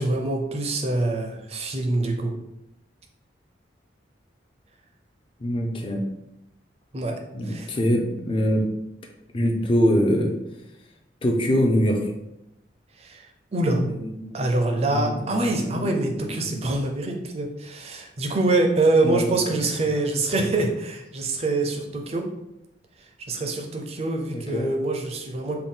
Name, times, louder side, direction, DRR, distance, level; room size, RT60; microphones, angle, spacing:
voice 1, 0.0-2.3 6.9-7.2 7.4-7.7 13.0-13.8 14.3-22.3 23.3-25.6, right 2 dB, 35° right, 3 dB, 0.5 m, -25 dB
voice 2, 5.4-6.0 7.3-8.7 9.3-10.4 11.2-12.1 13.7-14.4 14.6-16.6 19.0-19.5 24.3-24.7, equal, 30° left, 2 dB, 0.5 m, -24 dB
3.8 x 2.2 x 3.7 m, 0.87 s
head